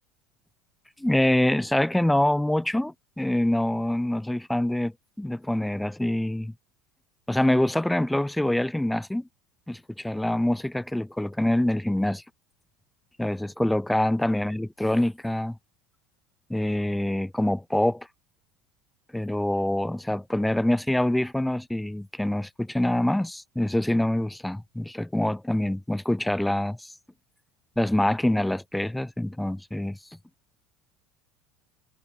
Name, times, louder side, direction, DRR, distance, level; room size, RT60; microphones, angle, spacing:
voice 1, 1.0-6.5 7.3-9.2 9.7-12.2 13.2-15.6 16.5-18.1 19.1-26.9 27.8-30.0, left 1 dB, 5° left, 0.4 m, -25 dB
figure-of-eight pair, 70°, 0 cm